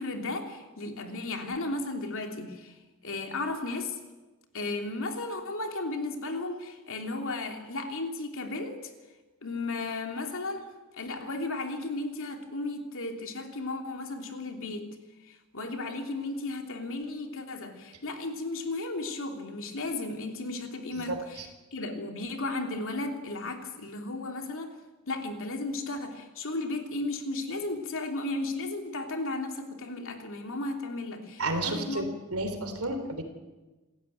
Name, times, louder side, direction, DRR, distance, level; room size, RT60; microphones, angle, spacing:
voice 1, 0.0-2.8 3.0-4.0 4.5-8.9 9.4-10.7 10.9-14.9 15.2-24.8 25.1-32.1, left 2 dB, 65° left, 3.0 m, -34 dB
voice 2, 31.4-33.2, right 2 dB, 70° right, 3.8 m, -31 dB
28.0 x 15.0 x 9.3 m
head